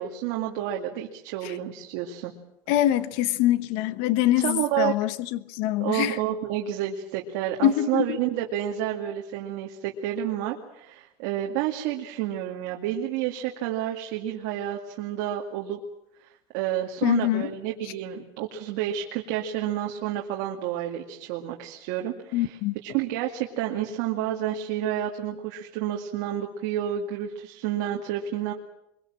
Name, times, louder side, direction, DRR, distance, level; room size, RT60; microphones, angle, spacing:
voice 1, 0.0-2.3 4.4-4.9 5.8-15.8 16.2-22.6 22.8-28.5, right 11 dB, 65° right, 2.3 m, -30 dB
voice 2, 2.7-6.2 7.6-8.2 17.0-17.5 22.3-22.7, left 13 dB, 60° left, 1.2 m, -24 dB
23.5 x 23.0 x 7.6 m
cardioid pair, 165°, 10 cm